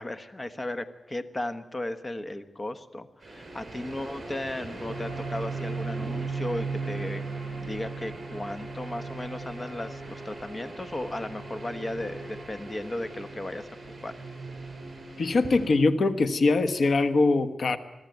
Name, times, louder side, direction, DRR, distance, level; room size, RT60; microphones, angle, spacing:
voice 1, 0.0-7.2 7.6-13.7 14.0-14.1, left 1 dB, 25° left, 10 dB, 1.3 m, -35 dB
sound 1, 3.2-15.7, right 3 dB, 35° right, 6.6 m, -37 dB
voice 2, 15.2-17.8, left 3 dB, 65° left, 10 dB, 1.3 m, -22 dB
22.5 x 13.5 x 9.3 m, 1.1 s
wide cardioid pair, 105°, 0 cm